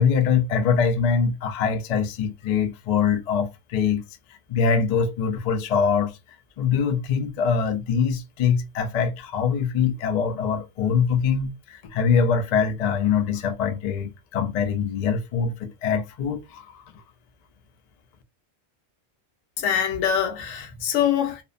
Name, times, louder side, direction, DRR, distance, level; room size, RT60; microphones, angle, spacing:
voice 1, 0.0-4.0 4.5-6.2 6.6-16.8, left 6 dB, 65° left, 0.4 m, -23 dB
voice 2, 19.6-21.4, left 9 dB, 80° left, 0.9 m, -24 dB
2.6 x 2.0 x 2.4 m
omnidirectional pair, 1.2 m